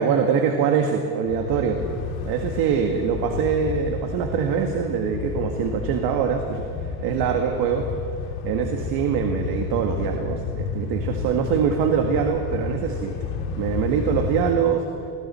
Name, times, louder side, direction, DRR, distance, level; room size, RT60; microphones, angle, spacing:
voice 1, 0.0-1.8 2.2-7.9 8.4-13.1 13.6-14.8, right 7 dB, 60° right, 4 dB, 1.7 m, -23 dB
sound 1, 1.3-14.5, left 5 dB, 65° left, 2.7 m, -31 dB
28.5 x 21.0 x 4.3 m, 2.3 s
cardioid pair, 155°, 41 cm